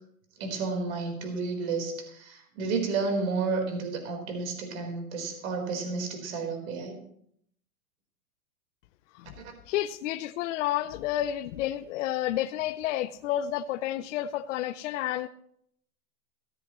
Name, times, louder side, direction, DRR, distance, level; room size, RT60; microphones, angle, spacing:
voice 1, 0.4-7.0, right 4 dB, 65° right, 3 dB, 4.4 m, -31 dB
voice 2, 9.7-15.3, left 12 dB, 60° left, 10 dB, 0.7 m, -30 dB
16.5 x 14.0 x 3.1 m, 0.69 s
hypercardioid pair, 130°, 43 cm